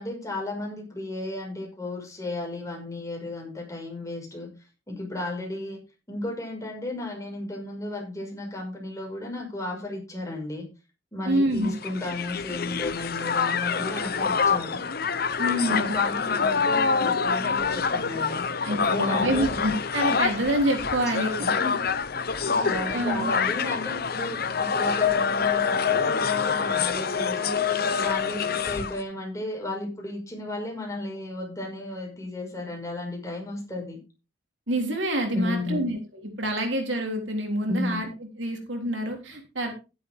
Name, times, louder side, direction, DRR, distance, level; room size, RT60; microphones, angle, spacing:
voice 1, 0.0-4.5 4.9-5.8 6.1-10.6 11.1-14.8 15.7-18.5 18.9-19.6 21.4-22.1 22.4-34.0 35.3-35.8 37.7-38.0, left 2 dB, 15° left, 0 dB, 5.6 m, -34 dB
voice 2, 11.3-11.7 15.4-15.9 18.6-21.3 22.9-23.3 34.7-38.1 38.4-39.7, right 1 dB, 75° right, 3 dB, 3.6 m, -27 dB
Crowd, 11.6-29.0, left 5 dB, 50° left, 0.9 m, -26 dB
12.0 x 11.0 x 3.6 m, 0.30 s
head